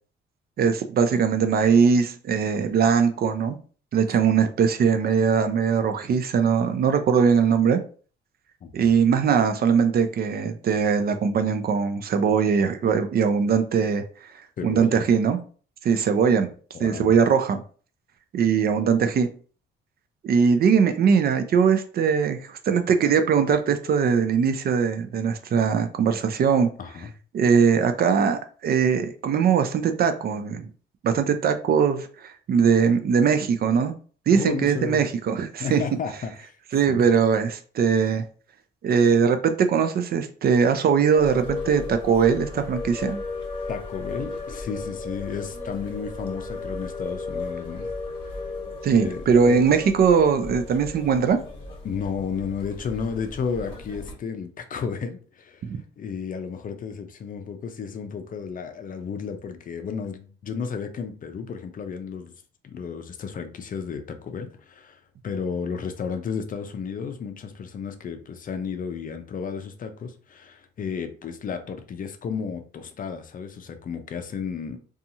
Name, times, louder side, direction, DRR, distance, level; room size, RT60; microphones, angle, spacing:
voice 1, 0.6-3.6 3.9-7.8 8.7-14.0 14.6-15.4 15.8-16.5 16.8-17.6 18.3-19.3 20.2-26.7 27.3-30.7 31.0-33.9 34.3-35.8 36.7-38.2 38.8-43.2 48.8-51.4 55.6-55.8, right 6 dB, 50° right, 0.4 m, -21 dB
voice 2, 14.6-15.1 16.7-17.1 26.8-27.1 34.3-35.1 35.6-36.6 36.9-37.0 43.7-47.9 48.9-49.7 51.8-55.6 56.0-62.3 62.6-74.8, left 6 dB, 45° left, 0.5 m, -33 dB
sound 1, 41.1-54.1, left 3 dB, 25° left, 1.1 m, -35 dB
2.7 x 2.4 x 2.7 m
cardioid pair, 90°, 20 cm